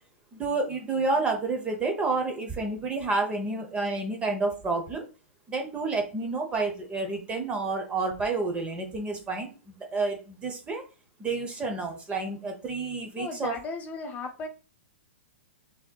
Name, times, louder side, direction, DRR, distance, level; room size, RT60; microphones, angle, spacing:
voice 1, 0.3-5.1 5.5-10.8 11.2-13.5, right 3 dB, 15° right, 3 dB, 0.7 m, -29 dB
voice 2, 13.2-14.5, left 3 dB, 25° left, 4 dB, 0.8 m, -35 dB
5.8 x 2.8 x 2.2 m, 0.32 s
hypercardioid pair, 135°, 7 cm